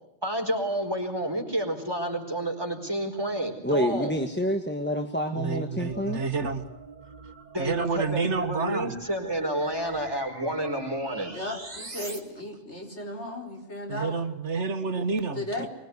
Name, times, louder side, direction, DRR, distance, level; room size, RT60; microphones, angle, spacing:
voice 1, 0.2-4.1 7.5-11.3, right 1 dB, 20° right, 2 dB, 4.8 m, -30 dB
voice 2, 3.6-6.2 15.6-15.7, equal, 10° left, 4 dB, 1.5 m, -28 dB
voice 3, 5.3-6.7 7.6-9.0 13.9-15.7, right 4 dB, 90° right, 9 dB, 1.8 m, -29 dB
sound 1, 5.9-12.2, right 2 dB, 35° right, 2.4 m, -43 dB
voice 4, 11.3-14.1 15.4-15.7, left 1 dB, 80° left, 1 dB, 4.9 m, -35 dB
24.0 x 22.5 x 9.6 m, 0.83 s
omnidirectional pair, 1.2 m